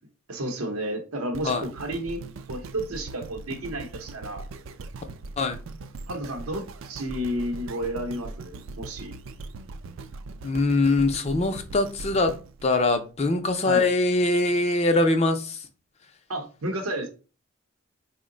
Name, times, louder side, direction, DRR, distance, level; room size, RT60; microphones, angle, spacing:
voice 1, 0.3-2.2 2.5-4.4 6.1-9.2 13.6-13.8 16.3-17.1, right 1 dB, 85° right, 0.7 m, -32 dB
sound 1, 1.3-13.5 14.1-14.2, right 3 dB, 65° right, 0.3 m, -41 dB
voice 2, 10.4-12.4 12.6-15.7, left 2 dB, 30° left, 0.4 m, -23 dB
3.8 x 2.1 x 3.7 m
head